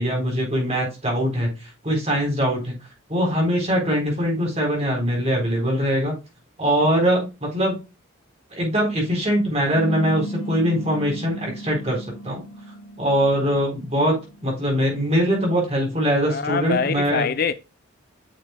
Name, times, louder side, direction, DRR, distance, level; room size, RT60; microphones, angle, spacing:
voice 1, 0.0-1.5 1.8-2.8 3.1-6.1 6.6-7.8 8.5-12.4 13.0-14.2 14.4-17.3, equal, 30° right, 3.9 m, -22 dB
sound 1, 9.7-14.7, right 1 dB, 90° left, 1.2 m, -35 dB
voice 2, 16.3-17.5, left 5 dB, 45° left, 0.4 m, -24 dB
9.1 x 6.4 x 2.2 m
head